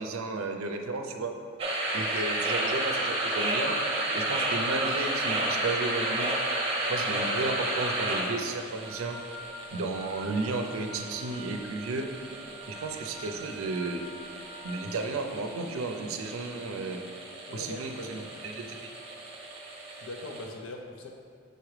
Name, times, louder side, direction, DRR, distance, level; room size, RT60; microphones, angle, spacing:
voice 1, 0.0-1.3 1.9-3.8 4.1-6.3 6.9-9.2 9.7-12.1 12.7-14.0 14.6-17.0 17.5-18.9, right 3 dB, 70° right, 4 dB, 0.5 m, -33 dB
sound 1, 1.6-20.5, right 1 dB, 25° right, 0.9 m, -33 dB
Wind instrument woodwind instrument, 8.8-15.0, right 1 dB, 10° right, 1.5 m, -46 dB
voice 2, 17.5-18.3 19.9-21.1, left 1 dB, 70° left, 2 dB, 0.5 m, -41 dB
6.6 x 4.7 x 3.2 m, 2.1 s
head